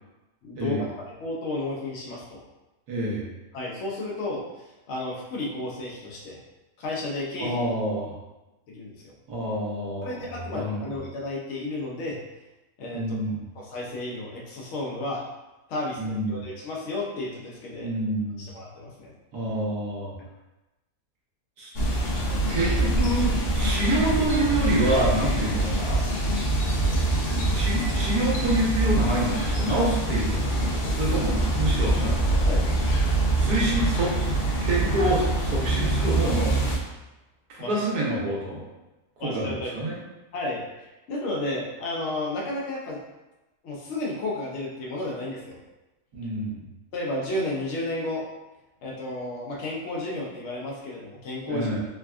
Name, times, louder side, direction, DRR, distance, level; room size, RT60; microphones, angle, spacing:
voice 1, 0.4-0.8 1.2-2.4 3.5-4.4 4.9-6.4 6.8-7.5 8.7-9.1 10.0-12.2 12.8-13.2 13.5-15.2 15.7-17.9 18.4-19.1 32.4-32.6 37.6-38.0 39.2-39.8 40.3-40.6 41.1-43.0 43.6-45.6 46.9-48.2 48.8-51.7, left 2 dB, 60° left, -3 dB, 0.8 m, -32 dB
voice 2, 2.9-3.2 7.4-8.1 9.3-10.2 10.5-10.9 12.9-13.4 16.0-16.4 17.8-18.4 19.3-20.1 21.6-21.7 22.3-26.0 26.9-27.1 27.3-32.5 33.3-34.3 34.6-36.6 37.5-38.6 39.2-40.0 46.1-46.6 51.5-51.8, right 1 dB, 80° right, -4 dB, 1.3 m, -27 dB
sound 1, 21.7-36.8, right 1 dB, 75° left, 0.5 m, -24 dB
3.4 x 2.2 x 2.3 m, 1.0 s
omnidirectional pair, 1.6 m